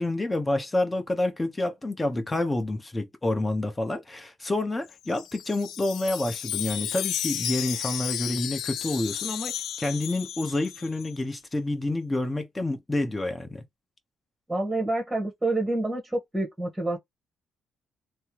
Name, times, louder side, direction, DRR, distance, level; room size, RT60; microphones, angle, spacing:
voice 1, 0.0-9.5 9.8-13.6, left 2 dB, 20° left, 0.9 m, -28 dB
Wind chime, 4.9-11.1, left 11 dB, 80° left, 0.3 m, -33 dB
voice 2, 14.5-17.0, right 2 dB, 10° right, 1.3 m, -28 dB
3.3 x 2.1 x 3.0 m
cardioid pair, 90°, 0 cm